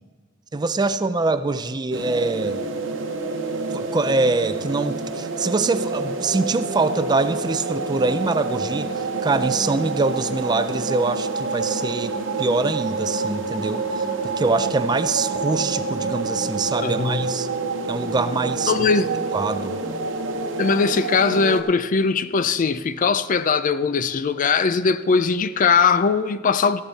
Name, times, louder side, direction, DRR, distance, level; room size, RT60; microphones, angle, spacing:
voice 1, 0.5-2.6 3.7-17.5 17.9-18.7 19.3-19.7, right 3 dB, 20° right, 0.4 m, -24 dB
sound 1, 1.9-21.6, right 3 dB, 75° right, 0.9 m, -27 dB
voice 2, 16.8-17.3 18.7-19.1 20.6-26.8, left 5 dB, 40° left, 0.4 m, -20 dB
14.0 x 10.5 x 4.1 m
head